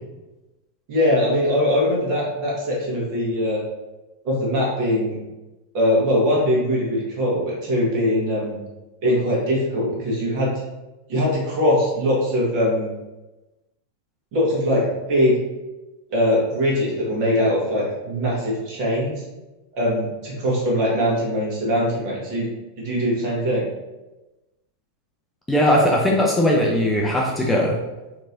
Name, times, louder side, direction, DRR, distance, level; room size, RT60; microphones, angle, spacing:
voice 1, 0.9-3.6 4.2-5.2 5.7-8.6 9.0-10.5 11.1-12.9 14.3-15.4 16.1-19.2 19.8-22.5 22.8-23.7, left 1 dB, 45° right, -4 dB, 1.4 m, -21 dB
voice 2, 25.5-27.8, equal, 10° left, -2 dB, 0.5 m, -19 dB
4.5 x 2.9 x 2.6 m, 1.1 s
figure-of-eight pair, 90°, 0 cm